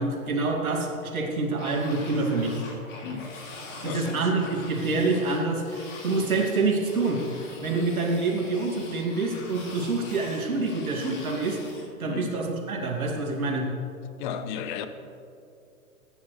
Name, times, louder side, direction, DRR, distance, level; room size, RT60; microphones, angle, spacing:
voice 1, 0.0-2.6 3.8-7.2 7.6-11.6 12.0-13.7, right 3 dB, 75° right, 0 dB, 2.6 m, -26 dB
sound 1, 1.6-11.9, left 2 dB, 55° left, 3.0 m, -44 dB
voice 2, 3.0-3.4 3.8-4.3 7.6-7.8 12.0-12.3 14.2-14.9, left 8 dB, 35° left, 10 dB, 1.0 m, -35 dB
23.0 x 9.8 x 3.3 m, 2.6 s
figure-of-eight pair, 115°, 43 cm